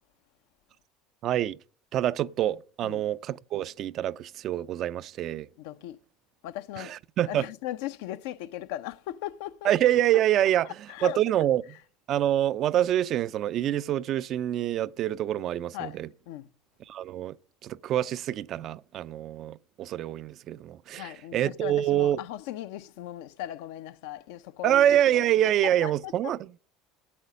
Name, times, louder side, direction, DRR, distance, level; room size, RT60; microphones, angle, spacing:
voice 1, 1.2-1.6 1.9-5.5 6.9-7.4 9.6-10.7 11.0-11.6 12.1-16.1 16.9-17.3 17.6-22.2 24.6-26.4, right 12 dB, 50° right, 0.4 m, -26 dB
voice 2, 5.6-6.0 6.4-6.9 7.2-9.7 10.6-11.5 15.7-16.0 16.3-16.5 20.9-25.3 25.6-26.3, left 13 dB, 70° left, 0.5 m, -38 dB
8.6 x 8.1 x 6.5 m
hypercardioid pair, 80°, 0 cm